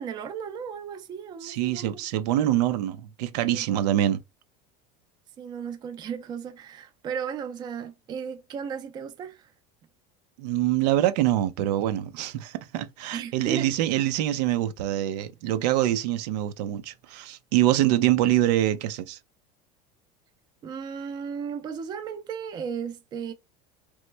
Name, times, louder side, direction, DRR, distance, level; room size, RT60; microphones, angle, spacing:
voice 1, 0.0-1.9 3.5-3.8 5.4-9.5 13.1-13.7 20.6-23.3, right 7 dB, 20° right, 0.4 m, -35 dB
voice 2, 1.4-4.2 10.4-19.2, right 13 dB, 85° right, 0.5 m, -25 dB
3.0 x 2.1 x 3.2 m
cardioid pair, 165°, 20 cm